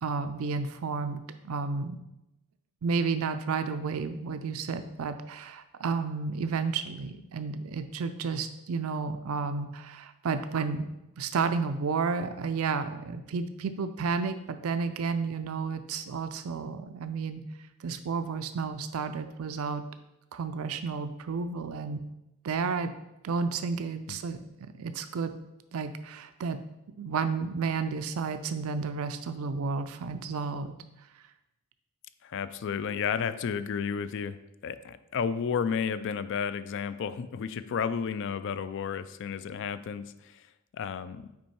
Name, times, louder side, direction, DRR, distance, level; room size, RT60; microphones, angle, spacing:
voice 1, 0.0-2.0 2.8-10.9 11.2-17.4 17.8-19.8 20.3-22.0 22.4-22.9 23.2-25.3 25.7-26.6 26.9-30.7, right 5 dB, 70° right, 10 dB, 0.4 m, -32 dB
voice 2, 32.2-40.4 40.7-41.3, left 6 dB, 55° left, 14 dB, 0.3 m, -32 dB
6.1 x 4.5 x 4.3 m, 0.92 s
head